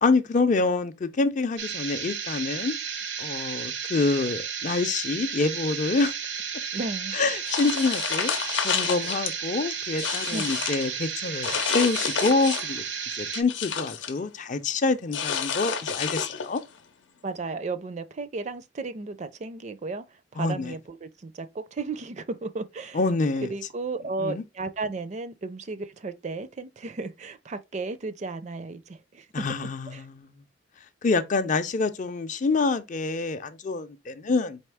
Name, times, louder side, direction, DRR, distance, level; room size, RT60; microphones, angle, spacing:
voice 1, 0.0-2.7 3.2-6.1 7.1-8.3 8.6-12.8 13.1-16.6 20.4-20.7 22.9-23.5 24.2-24.4 29.3-30.3 31.0-34.6, left 3 dB, 45° left, 0.4 m, -26 dB
sound 1, 1.6-13.4, right 7 dB, 70° right, 0.7 m, -33 dB
voice 2, 6.7-7.2 10.3-10.4 17.2-20.0 20.3-23.0 23.4-29.3 29.9-30.1, right 3 dB, 40° right, 0.4 m, -34 dB
sound 2, 7.5-9.3 9.7-10.8 11.4-12.8 13.1-14.2 15.1-16.6, left 7 dB, 90° left, 0.7 m, -29 dB
4.2 x 3.1 x 3.4 m
head